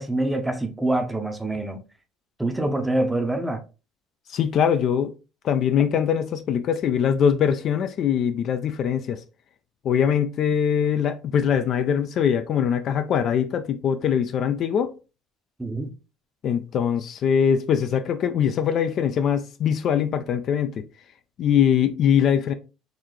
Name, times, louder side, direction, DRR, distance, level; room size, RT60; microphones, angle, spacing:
voice 1, 0.0-1.8 2.4-3.6 15.6-15.9, right 2 dB, 5° right, 0.7 m, -25 dB
voice 2, 4.3-5.1 5.4-9.2 9.8-14.9 16.4-20.8 21.4-22.5, left 8 dB, 45° left, 0.4 m, -22 dB
3.9 x 2.7 x 3.1 m
cardioid pair, 125°, 0 cm